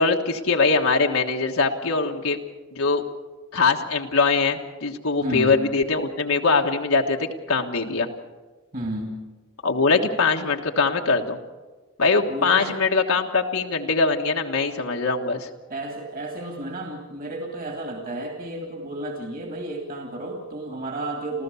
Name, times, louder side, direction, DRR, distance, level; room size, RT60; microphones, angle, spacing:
voice 1, 0.0-2.4 2.7-3.0 3.5-8.1 9.6-11.4 12.0-15.5, left 4 dB, 85° left, 2 dB, 1.4 m, -22 dB
voice 2, 5.2-5.6 8.7-9.1 12.3-12.8 15.7-21.4, right 1 dB, 45° right, 2 dB, 2.6 m, -32 dB
28.5 x 14.5 x 7.0 m, 1.3 s
head